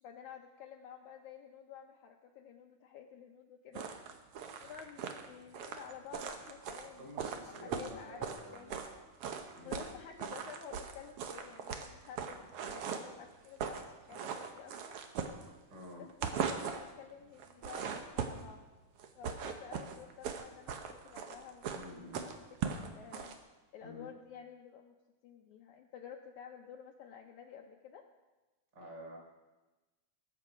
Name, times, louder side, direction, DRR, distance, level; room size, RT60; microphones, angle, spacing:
voice 1, 0.0-3.9 4.6-7.1 7.5-8.8 9.6-15.0 16.0-18.6 19.2-21.6 21.9-22.3 22.6-23.4 23.7-25.0 25.2-28.0, left 8 dB, 75° left, 3 dB, 1.9 m, -51 dB
sound 1, 3.7-8.9 9.2-9.9 10.2-13.1 13.4-13.9 14.1-15.8 16.1-16.9 17.4-18.5 19.0-23.3, right 7 dB, 75° right, 1.4 m, -39 dB
voice 2, 7.0-9.1 9.5-9.8 15.7-16.1 21.7-22.4 23.8-24.1 28.7-29.2, left 1 dB, 30° right, 0 dB, 4.0 m, -50 dB
19.5 x 8.5 x 5.0 m, 1.2 s
omnidirectional pair, 3.9 m